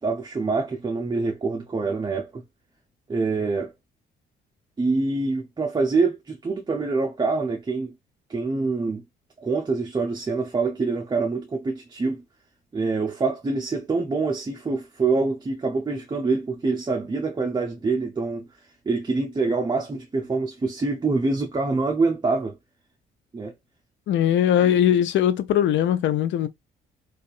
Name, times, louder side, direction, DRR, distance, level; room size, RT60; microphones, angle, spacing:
voice 1, 0.0-2.4 3.1-3.7 4.8-7.9 8.3-9.0 9.4-12.2 12.7-18.5 18.9-22.6 23.3-23.5 24.6-24.8, right 3 dB, 20° right, 0.6 m, -25 dB
voice 2, 24.1-26.5, left 10 dB, 70° left, 0.4 m, -20 dB
2.7 x 2.4 x 2.4 m
cardioid pair, 90°, 20 cm